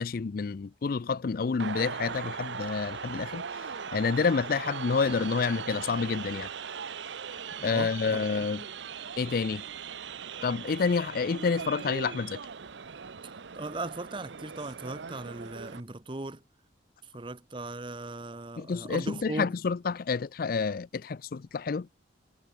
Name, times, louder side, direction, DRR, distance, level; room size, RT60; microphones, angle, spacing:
voice 1, 0.0-3.5 3.9-6.5 7.6-8.6 9.2-9.6 10.4-12.4 18.6-21.9, left 5 dB, 50° left, 0.4 m, -29 dB
sound 1, 1.6-15.8, right 6 dB, 75° right, 0.8 m, -39 dB
voice 2, 7.6-8.2 13.2-16.4 17.1-19.5, right 2 dB, 25° right, 1.0 m, -38 dB
head